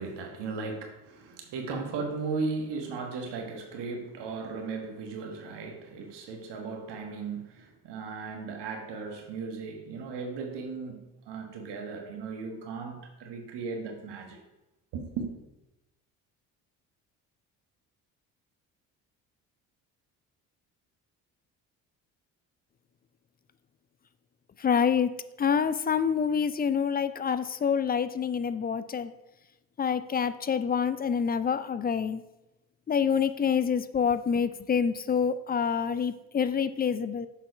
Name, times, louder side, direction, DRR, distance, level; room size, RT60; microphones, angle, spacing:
voice 1, 0.0-14.4 14.9-15.3, right 4 dB, 60° right, 3 dB, 1.5 m, -36 dB
voice 2, 24.6-29.1 29.8-32.2 32.9-37.3, left 7 dB, 20° left, 13 dB, 0.4 m, -27 dB
6.8 x 5.7 x 5.0 m, 0.97 s
hypercardioid pair, 55°, 47 cm